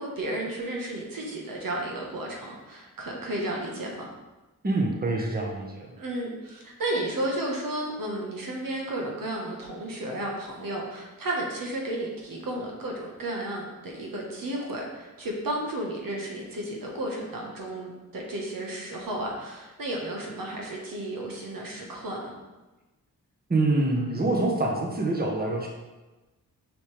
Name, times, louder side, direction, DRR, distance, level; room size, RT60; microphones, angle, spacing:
voice 1, 0.0-4.1 6.0-22.3, right 1 dB, 75° right, -1 dB, 1.4 m, -33 dB
voice 2, 4.6-6.0 23.5-25.7, right 2 dB, 25° right, 0 dB, 1.2 m, -26 dB
6.3 x 5.2 x 3.4 m, 1.1 s
cardioid pair, 70°, 35 cm